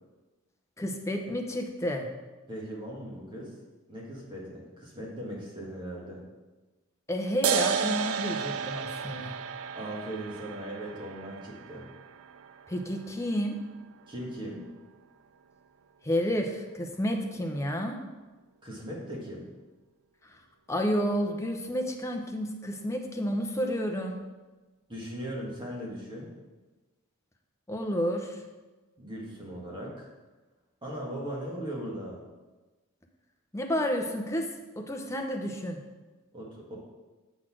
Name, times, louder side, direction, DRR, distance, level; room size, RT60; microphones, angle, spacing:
voice 1, 0.8-2.1 7.1-9.4 12.7-13.6 16.0-18.0 20.2-20.3 20.7-24.2 27.7-28.4 33.5-34.5 34.8-35.8, equal, 15° left, 3 dB, 0.7 m, -30 dB
voice 2, 2.5-3.5 3.9-6.2 9.1-9.2 9.7-11.9 14.1-14.6 18.6-19.5 24.9-26.3 29.0-30.1 30.8-32.2 36.3-36.8, right 1 dB, 20° right, -4 dB, 1.7 m, -38 dB
sound 1, 7.4-14.4, right 7 dB, 70° right, 0.4 m, -33 dB
7.7 x 4.1 x 6.0 m, 1.2 s
head